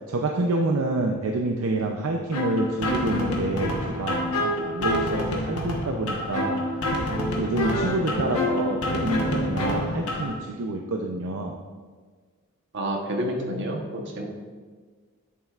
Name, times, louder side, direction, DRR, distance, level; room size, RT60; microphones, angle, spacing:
voice 1, 0.1-6.7 7.1-11.5, right 2 dB, 70° right, 1 dB, 0.6 m, -27 dB
sound 1, 2.3-10.3, left 1 dB, 80° left, 1.2 m, -27 dB
voice 2, 12.7-14.2, equal, 55° right, 1 dB, 1.1 m, -29 dB
8.5 x 7.3 x 2.4 m, 1.5 s
head